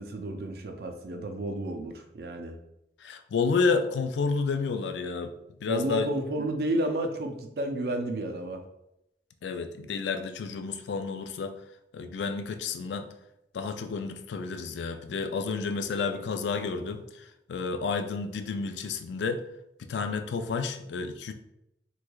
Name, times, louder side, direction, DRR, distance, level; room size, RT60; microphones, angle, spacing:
voice 1, 0.0-2.6 5.7-8.6, right 1 dB, 60° right, 5 dB, 0.4 m, -31 dB
voice 2, 3.0-5.3 5.6-6.1 9.4-11.6 11.9-13.1 13.5-17.2 17.5-19.4 19.8-21.3, left 4 dB, 85° left, 8 dB, 0.3 m, -30 dB
3.3 x 3.1 x 2.3 m, 0.83 s
head